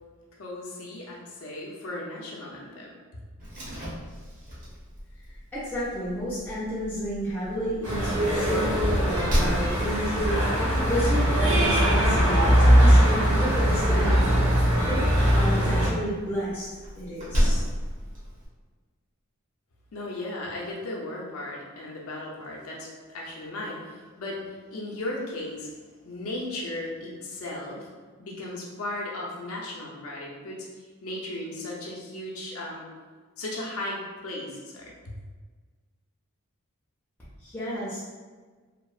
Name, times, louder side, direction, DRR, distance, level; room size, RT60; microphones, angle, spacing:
voice 1, 0.4-3.2 19.9-22.9 23.1-25.7 26.0-27.9 28.2-30.7 31.0-32.8 33.4-35.2, left 1 dB, 70° left, -3 dB, 0.5 m, -36 dB
Slam, 3.4-18.5, equal, 35° right, 0.7 m, -34 dB
voice 2, 5.3-14.3 14.8-16.7 17.0-17.6 37.2-38.1, equal, 10° left, -10 dB, 0.4 m, -31 dB
sound 1, 7.8-15.9, equal, 75° right, 0.7 m, -21 dB
2.8 x 2.0 x 2.3 m, 1.4 s
head